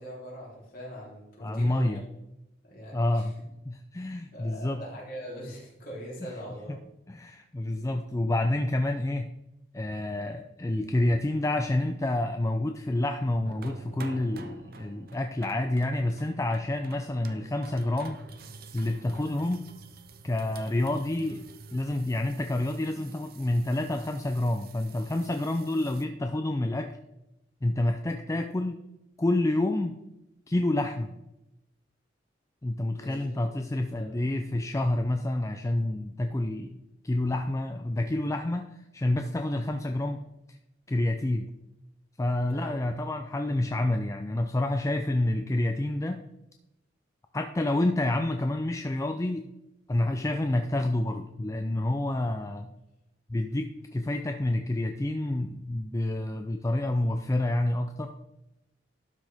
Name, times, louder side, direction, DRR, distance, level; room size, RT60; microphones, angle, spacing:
voice 1, 0.0-1.9 2.6-3.3 4.3-6.7 32.9-33.3 34.0-34.2 42.5-42.7, equal, 50° left, -4 dB, 3.6 m, -41 dB
voice 2, 1.4-2.0 2.9-3.4 3.7-4.8 6.2-6.3 6.7-6.8 7.1-9.3 9.7-18.2 18.7-19.7 20.2-27.0 27.6-28.8 29.2-30.0 30.5-31.1 32.6-40.6 40.9-41.5 42.2-46.2 47.3-49.5 49.9-52.7 53.3-58.1, left 1 dB, 15° left, 5 dB, 0.4 m, -28 dB
sound 1, 13.4-26.0, right 4 dB, 50° right, 0.7 m, -48 dB
12.0 x 6.3 x 3.5 m, 0.91 s
head